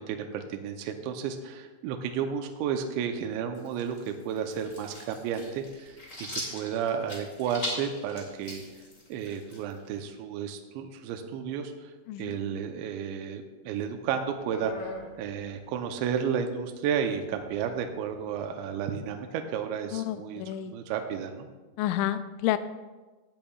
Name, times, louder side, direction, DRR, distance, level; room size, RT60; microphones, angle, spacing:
voice 1, 0.0-8.6 9.1-11.9 12.2-21.5, right 7 dB, 80° right, 5 dB, 2.9 m, -32 dB
sound 1, 3.5-10.0, left 1 dB, 30° left, 1.4 m, -40 dB
voice 2, 12.1-12.4 19.9-20.7 21.8-22.6, left 13 dB, 85° left, 11 dB, 2.9 m, -30 dB
sound 2, 13.8-16.3 16.6-19.0, left 1 dB, 65° left, 2.5 m, -46 dB
18.0 x 9.0 x 2.4 m, 1.3 s
omnidirectional pair, 5.4 m